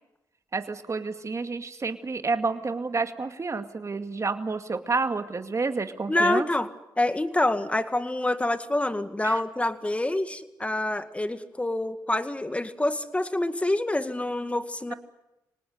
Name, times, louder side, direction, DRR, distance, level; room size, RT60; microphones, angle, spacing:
voice 1, 0.5-6.5 9.2-9.4, right 4 dB, 40° right, 8 dB, 2.3 m, -29 dB
voice 2, 6.1-6.7 7.0-14.9, left 1 dB, 15° left, 10 dB, 2.0 m, -27 dB
25.5 x 19.0 x 9.3 m, 0.92 s
cardioid pair, 60°, 8 cm